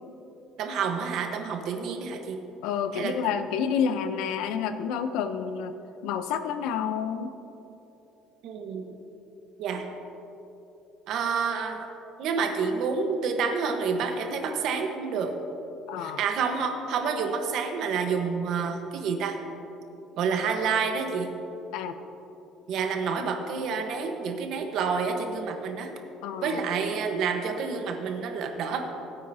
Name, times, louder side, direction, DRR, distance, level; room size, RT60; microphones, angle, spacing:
voice 1, 0.6-2.4 2.9-3.1 8.4-8.8 9.6-9.8 11.1-11.9 12.2-15.4 16.0-19.4 20.2-21.3 22.7-25.9 26.4-28.8, right 5 dB, 55° right, 4 dB, 1.1 m, -28 dB
voice 2, 2.6-5.8 6.0-7.3 15.9-16.2 21.7-21.9 26.2-26.6, left 7 dB, 80° left, 10 dB, 0.6 m, -29 dB
17.5 x 8.7 x 2.8 m, 3.0 s
cardioid pair, 160°, 0 cm